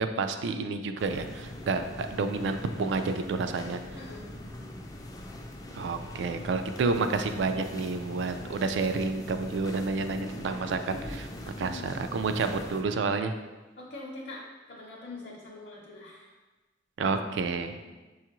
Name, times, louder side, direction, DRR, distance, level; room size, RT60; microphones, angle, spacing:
voice 1, 0.0-3.8 5.7-11.3 11.6-13.3 17.0-17.7, right 4 dB, 75° right, 8 dB, 0.3 m, -29 dB
sound 1, 1.0-12.8, left 1 dB, 20° left, 0.3 m, -42 dB
voice 2, 3.9-4.5 5.7-6.1 11.5-11.9 13.8-16.3 17.8-17.9, left 2 dB, 60° left, -5 dB, 0.7 m, -44 dB
6.3 x 2.4 x 2.9 m, 1.2 s
head